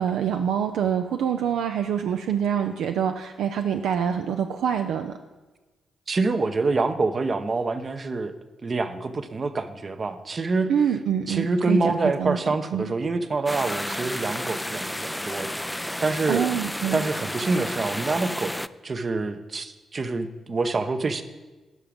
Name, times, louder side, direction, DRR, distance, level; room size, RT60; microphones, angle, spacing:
voice 1, 0.0-5.1 10.7-12.4 12.7-12.9 16.3-17.0, right 8 dB, 75° right, 6 dB, 0.4 m, -25 dB
voice 2, 6.1-8.3 8.6-10.7 11.3-16.4 16.9-18.6 18.8-21.2, right 3 dB, 45° right, 10 dB, 0.8 m, -26 dB
sound 1, 13.5-18.7, left 1 dB, 10° left, 0.3 m, -32 dB
11.0 x 5.8 x 5.1 m, 1.2 s
hypercardioid pair, 40°, 0 cm